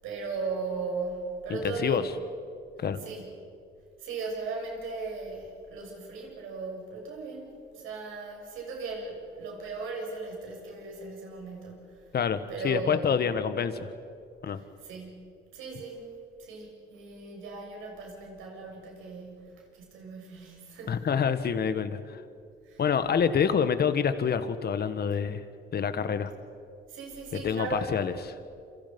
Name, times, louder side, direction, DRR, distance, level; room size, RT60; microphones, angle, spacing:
voice 1, 0.0-2.1 3.0-3.3 4.0-12.0 12.5-13.2 14.5-15.2 15.5-16.1 16.4-21.0 22.6-22.8 23.5-23.6 26.9-27.9, right 4 dB, 90° right, 0 dB, 7.2 m, -37 dB
voice 2, 1.5-2.0 2.8-3.0 12.1-13.9 14.4-14.6 20.9-22.2 22.8-25.4 25.7-26.3 27.3-28.1, left 7 dB, 55° left, 11 dB, 1.7 m, -27 dB
28.5 x 26.5 x 5.5 m, 2.4 s
cardioid pair, 90°, 20 cm